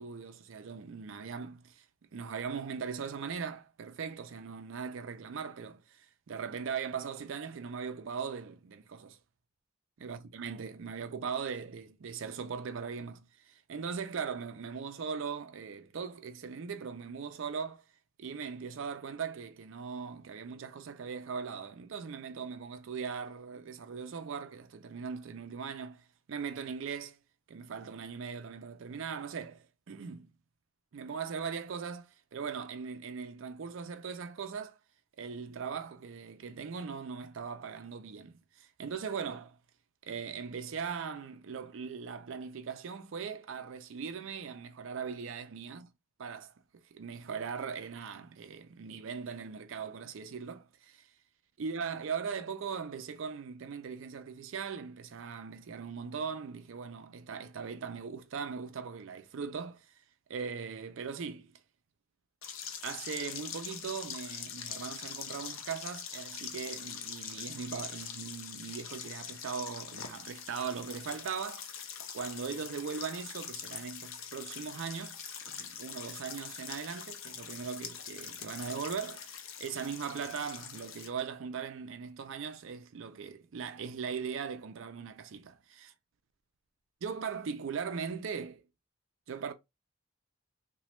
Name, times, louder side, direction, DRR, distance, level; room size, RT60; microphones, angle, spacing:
voice 1, 0.0-1.8 2.1-9.2 10.0-17.8 18.2-27.2 27.5-30.3 30.9-34.8 35.2-39.6 40.0-45.9 46.2-46.5 46.9-51.1 51.6-59.9 60.3-61.6 62.8-71.9 72.1-75.2 75.5-85.9 87.0-88.6 89.3-89.5, right 6 dB, 70° right, 0.4 m, -39 dB
sound 1, 62.4-81.1, left 8 dB, 70° left, 0.5 m, -43 dB
2.9 x 2.2 x 3.0 m
head